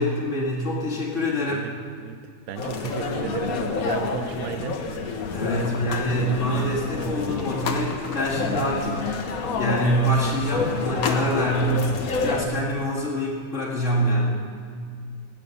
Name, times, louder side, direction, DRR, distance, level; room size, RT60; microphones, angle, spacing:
voice 1, 0.0-1.7 2.7-2.8 5.3-9.1 9.5-11.9 12.2-14.4, equal, 60° left, -4 dB, 2.5 m, -25 dB
voice 2, 2.5-4.8 5.6-5.8 8.1-8.2, right 9 dB, 80° right, 12 dB, 1.1 m, -33 dB
sound 1, 2.6-12.4, left 4 dB, 90° left, 1.5 m, -28 dB
18.0 x 8.5 x 5.4 m, 2.2 s
omnidirectional pair, 1.5 m